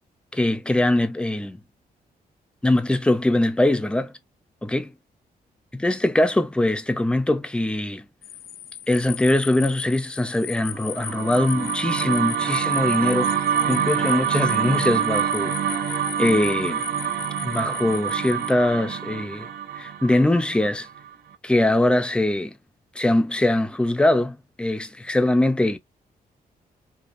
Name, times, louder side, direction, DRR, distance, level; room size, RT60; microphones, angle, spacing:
voice 1, 0.3-1.6 2.6-4.1 4.6-4.8 5.7-8.0 8.9-13.3 13.7-16.8 17.4-19.5 19.8-20.9 21.4-22.5 23.0-25.8, left 1 dB, 5° left, 0.5 m, -22 dB
sound 1, 8.2-18.5, left 10 dB, 70° left, 0.5 m, -37 dB
sound 2, 10.8-21.1, right 9 dB, 75° right, 0.9 m, -26 dB
5.0 x 2.4 x 2.5 m
wide cardioid pair, 145°, 16 cm